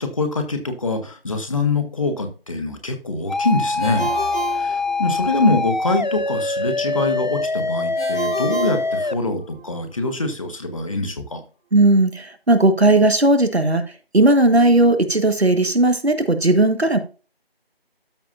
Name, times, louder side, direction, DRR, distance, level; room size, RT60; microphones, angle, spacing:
voice 1, 0.0-4.1 4.5-11.4, left 2 dB, 35° left, 6 dB, 1.6 m, -24 dB
sound 1, 3.3-9.1, left 3 dB, 50° left, 0.4 m, -24 dB
Ringtone, 3.8-5.5 8.0-9.6, right 3 dB, 5° left, 1.5 m, -31 dB
sound 2, 4.0-5.5, equal, 85° left, 3.7 m, -38 dB
voice 2, 11.7-13.9 14.1-17.0, right 2 dB, 85° right, 8 dB, 1.7 m, -16 dB
13.0 x 4.9 x 2.7 m, 0.35 s
figure-of-eight pair, 165°, 31 cm